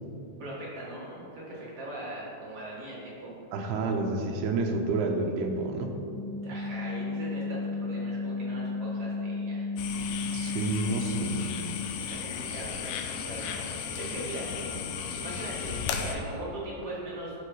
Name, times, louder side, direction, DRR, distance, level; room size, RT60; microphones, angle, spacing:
voice 1, 0.4-3.4 6.4-9.7 10.4-10.6 12.1-14.5 15.2-17.3, right 1 dB, 50° right, -6 dB, 2.0 m, -40 dB
voice 2, 3.5-6.0 10.3-11.5, right 3 dB, 80° right, 3 dB, 2.7 m, -29 dB
sound 1, 6.1-11.5, left 3 dB, 70° left, 2.1 m, -33 dB
sound 2, 9.8-16.2, left 7 dB, 90° left, 3.0 m, -35 dB
11.5 x 5.7 x 4.8 m, 2.7 s
omnidirectional pair, 4.9 m